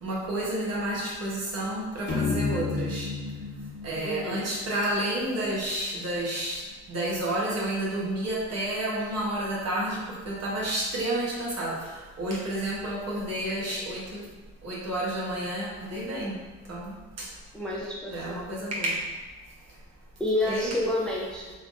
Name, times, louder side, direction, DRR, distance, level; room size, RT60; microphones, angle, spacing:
voice 1, 0.0-3.1 3.8-6.6 6.9-14.3 14.6-16.4 16.7-17.3 18.1-19.0 20.5-20.7, right 1 dB, 50° right, -5 dB, 1.1 m, -30 dB
sound 1, 2.1-5.6, left 4 dB, 35° left, 1.1 m, -32 dB
voice 2, 4.0-4.5 17.5-18.5 20.2-21.5, left 1 dB, 5° left, -3 dB, 0.5 m, -29 dB
3.3 x 2.3 x 2.5 m, 1.3 s
hypercardioid pair, 55°, 33 cm